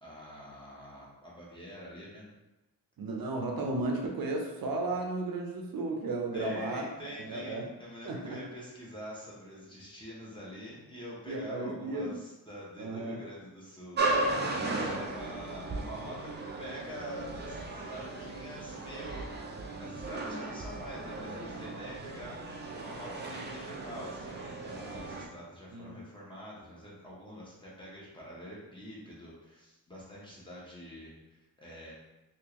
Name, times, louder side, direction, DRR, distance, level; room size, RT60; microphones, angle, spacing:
voice 1, 0.0-2.3 6.3-19.5 19.8-31.9, equal, 15° left, -6 dB, 0.9 m, -46 dB
voice 2, 3.0-6.8 7.2-7.6 8.1-8.4 11.3-12.1 12.8-13.2 14.7-15.0 25.7-26.0, right 2 dB, 70° right, 1 dB, 0.6 m, -34 dB
sound 1, 14.0-25.3, right 2 dB, 30° right, 0.4 m, -36 dB
3.5 x 2.4 x 2.9 m, 1.0 s
wide cardioid pair, 165°, 36 cm